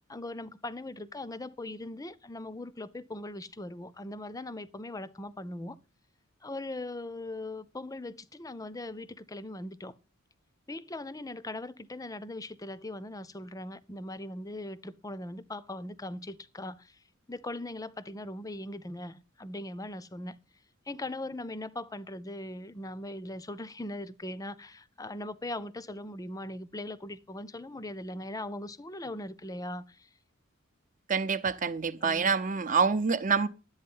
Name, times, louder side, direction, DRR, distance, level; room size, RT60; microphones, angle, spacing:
voice 1, 0.1-5.8 6.4-9.9 10.7-17.0 17.3-20.4 20.9-30.1 32.0-32.4, left 1 dB, 15° left, 0.6 m, -40 dB
voice 2, 31.1-33.5, right 5 dB, 40° right, 0.7 m, -26 dB
11.0 x 8.5 x 5.5 m
head